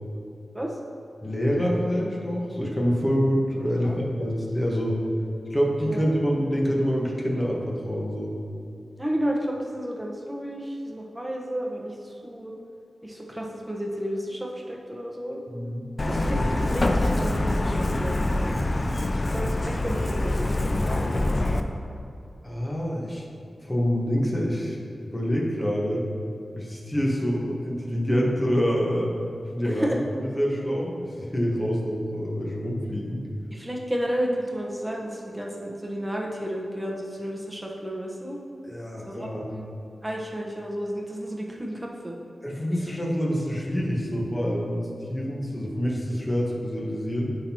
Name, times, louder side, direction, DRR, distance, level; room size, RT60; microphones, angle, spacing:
voice 1, 1.2-5.0 5.5-8.4 15.5-15.8 22.4-23.3 23.6-24.8 25.1-26.1 26.6-29.1 29.5-30.0 30.3-33.2 38.6-39.5 42.4-47.4, equal, 25° left, -3 dB, 1.5 m, -26 dB
voice 2, 9.0-12.5 13.0-15.4 16.0-16.4 16.7-18.2 18.8-20.6 29.6-30.0 33.5-38.4 39.1-39.6 40.0-42.2, equal, 15° right, -1 dB, 1.2 m, -32 dB
Truck, 16.0-21.6, left 1 dB, 45° left, 0.5 m, -25 dB
10.5 x 3.9 x 3.0 m, 2.6 s
cardioid pair, 40°, 0 cm